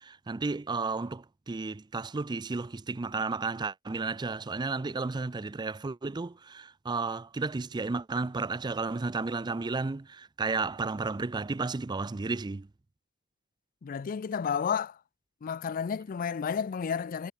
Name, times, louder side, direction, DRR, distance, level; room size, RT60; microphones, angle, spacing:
voice 1, 0.0-12.7, right 3 dB, 20° right, 0.4 m, -33 dB
voice 2, 13.8-15.0 15.4-17.3, left 7 dB, 40° left, 0.4 m, -31 dB
head